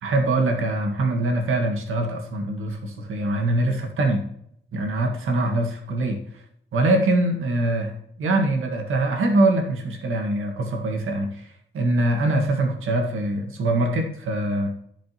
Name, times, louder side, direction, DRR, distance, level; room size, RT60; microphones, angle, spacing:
voice 1, 0.0-4.3 4.7-6.4 6.7-11.5 11.7-14.7, right 2 dB, 80° right, 2 dB, 1.9 m, -23 dB
15.0 x 5.1 x 3.1 m, 0.70 s
wide cardioid pair, 125°, 21 cm